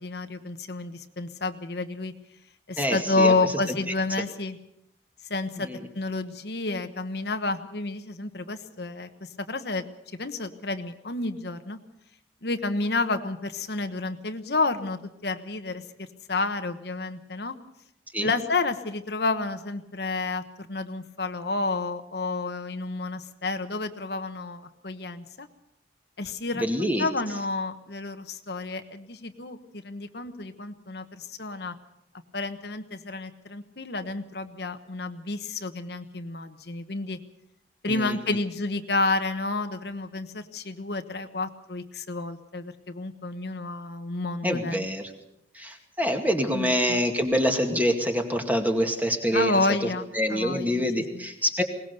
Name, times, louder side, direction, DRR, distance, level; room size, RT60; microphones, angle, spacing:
voice 1, 0.0-2.1 2.7-4.6 5.3-5.7 5.9-9.8 10.1-11.8 12.4-17.5 18.2-25.5 26.2-31.7 32.3-37.2 37.8-44.9 46.5-47.0 49.3-51.2, left 3 dB, 65° left, 8 dB, 1.2 m, -30 dB
voice 2, 2.8-3.3 3.7-3.8 5.6-5.8 18.1-18.3 26.6-27.1 37.9-38.4 44.4-45.0 45.5-49.9 50.1-51.6, equal, 10° right, 4 dB, 2.2 m, -26 dB
21.5 x 19.0 x 6.8 m, 0.78 s
head